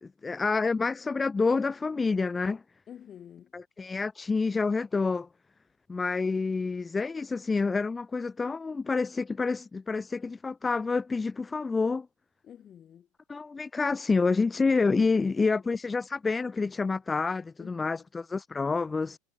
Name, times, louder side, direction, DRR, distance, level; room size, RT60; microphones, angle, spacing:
voice 1, 0.0-2.6 3.5-5.3 5.9-12.1 13.3-19.2, left 4 dB, 15° left, 0.3 m, -28 dB
voice 2, 2.9-3.5 12.4-13.1 15.2-15.6 17.6-18.1, left 9 dB, 35° left, 3.5 m, -49 dB
supercardioid pair, 115°, 0 cm